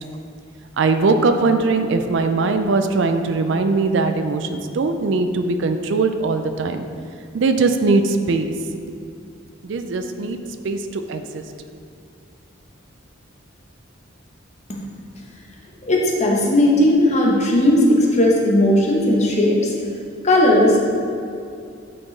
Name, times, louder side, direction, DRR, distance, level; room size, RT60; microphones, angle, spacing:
voice 1, 0.8-6.9 7.3-8.5 9.6-10.4 10.6-11.4, right 3 dB, 60° right, 7 dB, 0.4 m, -20 dB
voice 2, 15.8-19.7 20.2-20.8, left 1 dB, 35° left, -2 dB, 0.9 m, -16 dB
8.7 x 4.4 x 3.2 m, 2.5 s
head